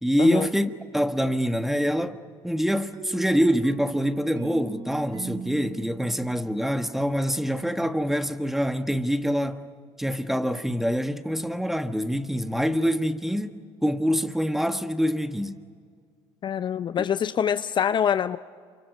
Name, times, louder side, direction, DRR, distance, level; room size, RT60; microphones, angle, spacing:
voice 1, 0.0-2.2 2.4-9.6 10.0-15.6, equal, 5° right, 1.4 m, -25 dB
sound 1, 2.9-7.6, right 6 dB, 40° right, 0.8 m, -40 dB
voice 2, 16.4-18.4, left 8 dB, 40° left, 0.6 m, -25 dB
28.0 x 26.0 x 5.4 m
hypercardioid pair, 70°, 12 cm